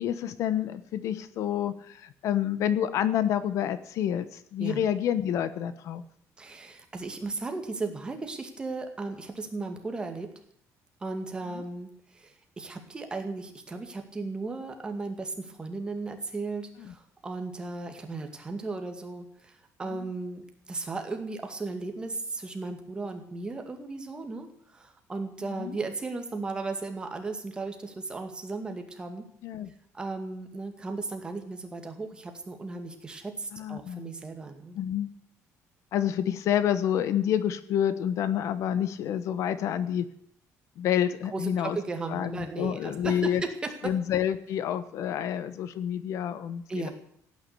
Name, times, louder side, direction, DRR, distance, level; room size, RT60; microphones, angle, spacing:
voice 1, 0.0-6.0 11.5-11.6 16.8-16.9 19.9-20.1 25.5-25.8 29.4-29.7 33.5-34.1 34.8-35.1 35.9-40.1 40.8-41.8 42.1-43.4 43.8-46.9, left 10 dB, 60° left, 14 dB, 1.1 m, -28 dB
voice 2, 6.4-10.3 11.0-29.3 29.9-34.8 41.3-43.3 43.6-43.9 46.7-46.9, right 3 dB, 15° right, 5 dB, 2.2 m, -36 dB
16.5 x 9.6 x 8.6 m, 0.66 s
cardioid pair, 170°, 6 cm